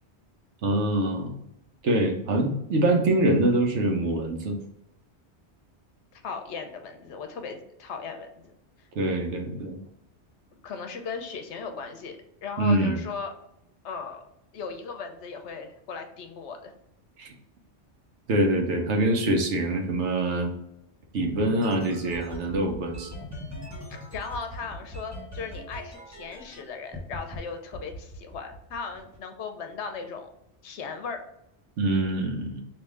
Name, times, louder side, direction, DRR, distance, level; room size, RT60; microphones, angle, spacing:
voice 1, 0.6-1.3 1.8-4.6 8.9-9.8 12.6-13.0 17.2-17.3 18.3-20.5 21.1-23.1 31.8-32.6, right 1 dB, 85° right, 3 dB, 1.1 m, -24 dB
voice 2, 6.1-8.5 10.6-13.3 13.8-14.2 14.5-16.7 23.9-30.3 30.6-31.2, left 5 dB, 80° left, 6 dB, 1.0 m, -37 dB
sound 1, 21.2-26.6 26.9-27.4 27.7-29.2, left 1 dB, 15° right, 0.8 m, -40 dB
3.6 x 2.6 x 4.6 m, 0.81 s
omnidirectional pair, 1.1 m